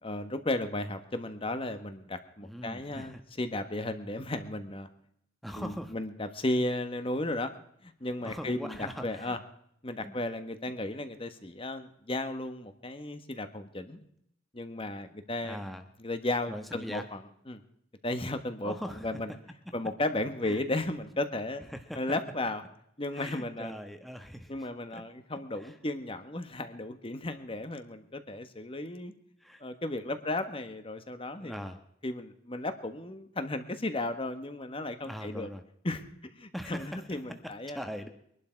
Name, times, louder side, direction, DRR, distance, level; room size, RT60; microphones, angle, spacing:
voice 1, 0.0-4.9 5.5-7.6 7.8-9.4 9.8-14.0 14.5-15.6 16.0-17.6 18.0-19.3 19.7-21.6 21.9-22.6 23.0-23.7 24.5-29.1 29.6-31.7 32.0-35.5 35.8-36.0 36.3-37.8, left 2 dB, 30° left, 9 dB, 1.4 m, -34 dB
voice 2, 2.4-3.2 5.4-5.9 8.2-9.4 10.0-10.1 15.4-15.9 16.5-17.0 18.6-19.1 20.5-20.6 21.7-22.0 23.1-24.7 24.9-25.0 25.6-25.7 29.4-29.6 31.4-31.8 35.0-35.6 36.5-37.0 37.7-38.1, equal, ahead, 5 dB, 1.3 m, -41 dB
23.0 x 11.5 x 4.6 m, 0.72 s
head